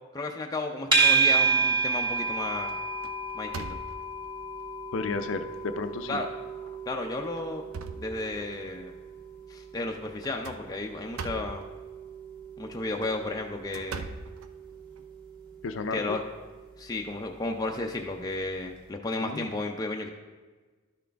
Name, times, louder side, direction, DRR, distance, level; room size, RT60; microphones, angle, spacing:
voice 1, 0.1-2.8 3.3-3.8 6.1-6.3 6.9-7.6 8.0-8.9 9.5-11.6 12.6-14.1 15.9-16.2 16.8-20.1, left 2 dB, 20° left, 2 dB, 0.5 m, -33 dB
sound 1, 0.9-18.1, right 4 dB, 20° right, 1.8 m, -32 dB
sound 2, 1.6-1.7 2.1-2.3 2.7-4.3 5.0-5.1 5.5-5.6 6.5-6.8 7.2-8.7 10.2-11.7 12.8-15.0, right 4 dB, 85° right, 0.5 m, -42 dB
voice 2, 4.9-6.2 15.6-16.2 19.1-19.5, left 4 dB, 70° left, 9 dB, 0.5 m, -33 dB
12.0 x 6.2 x 3.4 m, 1.4 s
head